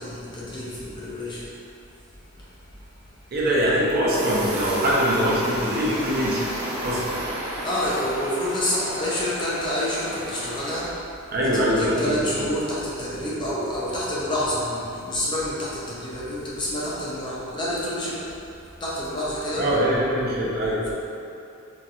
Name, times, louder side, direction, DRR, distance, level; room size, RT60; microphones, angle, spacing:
voice 1, 0.0-1.5 7.6-11.0 11.4-18.3 18.8-19.7, left 1 dB, 20° left, -7 dB, 0.4 m, -28 dB
voice 2, 3.3-6.5 6.8-7.2 11.3-12.5 19.5-20.8, equal, 45° right, -6 dB, 0.6 m, -23 dB
sound 1, 4.1-10.9, right 1 dB, 75° right, 0.7 m, -33 dB
4.1 x 2.3 x 2.4 m, 2.7 s
head